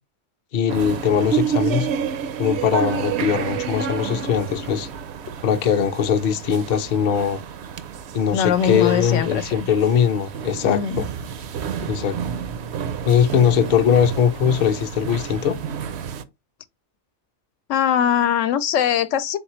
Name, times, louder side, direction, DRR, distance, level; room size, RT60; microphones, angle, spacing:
voice 1, 0.5-1.9 2.4-4.9 5.4-7.4 8.1-11.1 11.9-12.2 13.0-15.6, left 8 dB, 50° left, 0.6 m, -20 dB
sound 1, 0.7-16.2, right 7 dB, 65° right, 0.8 m, -29 dB
voice 2, 8.3-9.7 10.6-11.0 17.7-19.4, left 8 dB, 85° left, 0.9 m, -21 dB
3.9 x 3.9 x 3.0 m
omnidirectional pair, 1.2 m